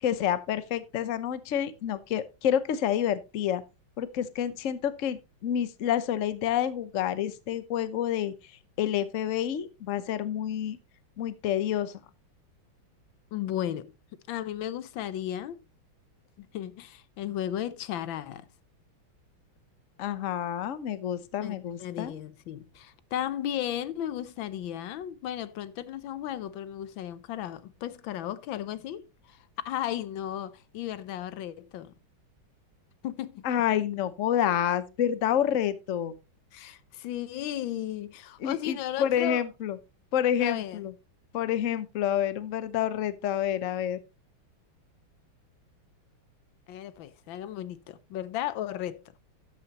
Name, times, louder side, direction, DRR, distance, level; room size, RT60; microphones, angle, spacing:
voice 1, 0.0-3.6 4.0-8.3 8.8-10.8 11.2-11.9 20.0-22.1 33.4-36.1 38.4-39.8 40.1-40.9 41.3-44.0, left 10 dB, 55° left, 0.9 m, -28 dB
voice 2, 13.3-13.9 14.3-15.6 16.4-18.5 21.4-21.5 21.8-31.9 33.0-33.4 36.5-39.4 40.4-40.8 46.7-49.0, left 11 dB, 75° left, 1.4 m, -35 dB
12.5 x 8.6 x 2.9 m
omnidirectional pair, 2.2 m